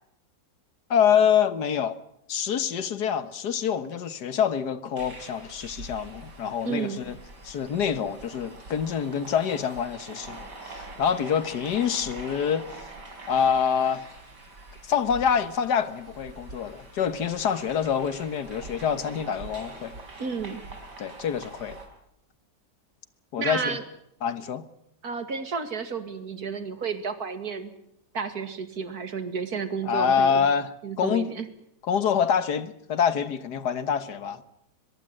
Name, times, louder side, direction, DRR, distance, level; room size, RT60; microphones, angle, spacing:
voice 1, 0.9-2.0 2.3-7.2 7.4-12.8 13.3-14.1 14.8-20.0 21.0-21.8 23.3-23.8 24.2-24.7 29.8-31.3 31.8-34.4, left 7 dB, 75° left, 1.8 m, -26 dB
sound 1, 5.0-21.9, right 2 dB, 80° right, 4.9 m, -44 dB
voice 2, 6.6-7.0 20.2-20.6 23.4-23.8 25.0-27.7 28.1-30.5 30.8-31.5, right 5 dB, 65° right, 2.6 m, -31 dB
22.5 x 22.5 x 7.6 m
omnidirectional pair, 1.8 m